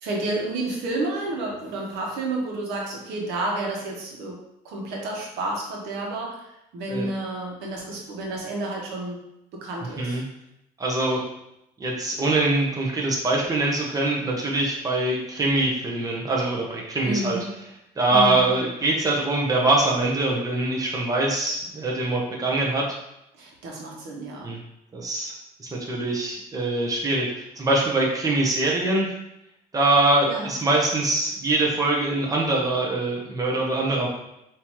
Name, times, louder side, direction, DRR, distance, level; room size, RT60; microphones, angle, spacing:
voice 1, 0.0-4.4 4.6-9.2 9.5-10.2 17.0-17.5 18.1-18.5 23.3-24.5 30.3-30.6, right 2 dB, 85° right, -1 dB, 1.2 m, -30 dB
voice 2, 10.8-11.2 11.8-17.4 18.0-23.0 24.4-24.6 24.9-25.3 25.6-29.1 29.7-34.1, right 2 dB, 20° right, -2 dB, 1.0 m, -23 dB
5.5 x 2.9 x 3.1 m, 0.83 s
cardioid pair, 110°, 17 cm